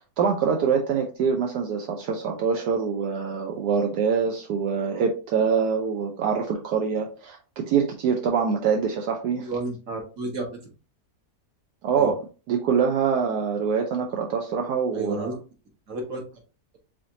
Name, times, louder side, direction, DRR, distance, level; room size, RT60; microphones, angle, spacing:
voice 1, 0.2-9.5 11.8-12.2 12.5-15.3, right 6 dB, 80° right, 2 dB, 1.3 m, -24 dB
voice 2, 9.4-10.4 12.0-12.1 14.9-15.3 15.9-16.2, right 2 dB, 55° right, 0 dB, 1.8 m, -31 dB
5.0 x 3.6 x 2.8 m, 0.34 s
omnidirectional pair, 1.7 m